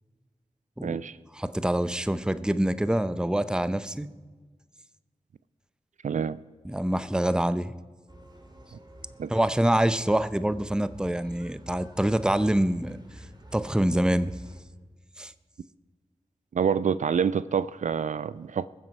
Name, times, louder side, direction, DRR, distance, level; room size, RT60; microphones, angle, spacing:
voice 1, 0.8-1.2 6.0-6.4 9.2-9.3 16.5-18.7, right 7 dB, 75° right, 0.4 m, -27 dB
voice 2, 1.3-4.1 6.6-7.7 9.3-13.0 13.5-14.4 15.2-15.3, right 1 dB, 5° right, 0.6 m, -25 dB
sound 1, 8.1-14.6, equal, 35° right, 2.0 m, -47 dB
20.5 x 7.6 x 5.4 m
cardioid pair, 40°, 13 cm